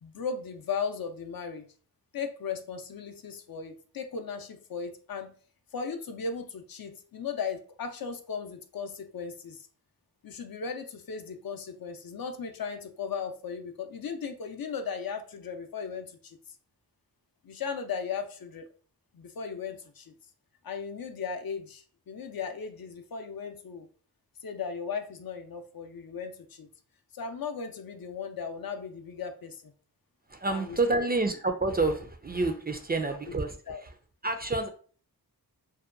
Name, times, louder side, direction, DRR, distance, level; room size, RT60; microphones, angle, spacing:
voice 1, 0.0-1.6 2.1-5.3 5.7-9.7 10.2-16.4 17.4-18.7 19.1-20.1 20.6-23.9 24.4-26.7 27.1-29.6 30.5-31.0 33.1-33.4 33.7-33.8, left 6 dB, 60° left, 6 dB, 0.5 m, -37 dB
voice 2, 30.3-33.9 34.2-34.7, right 3 dB, 25° right, 6 dB, 0.4 m, -28 dB
2.7 x 2.2 x 2.4 m, 0.41 s
cardioid pair, 45°, 40 cm